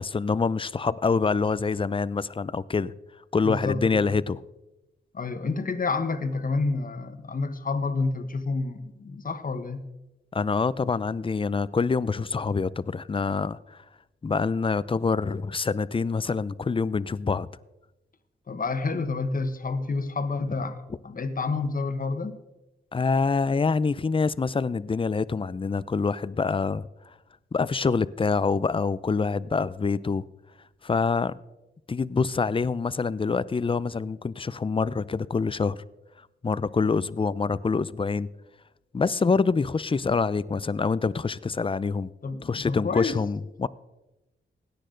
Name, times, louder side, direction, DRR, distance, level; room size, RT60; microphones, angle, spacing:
voice 1, 0.0-2.9 3.3-4.4 10.3-13.8 14.2-17.5 22.9-26.9 27.5-30.2 30.8-31.3 31.9-35.8 36.4-38.3 38.9-42.1 42.4-43.7, left 4 dB, 25° left, 0.5 m, -26 dB
voice 2, 3.4-4.2 5.1-9.8 18.5-20.8 21.0-22.4 42.2-43.2, left 3 dB, 45° left, 1.3 m, -29 dB
17.0 x 9.9 x 3.9 m
cardioid pair, 55°, 20 cm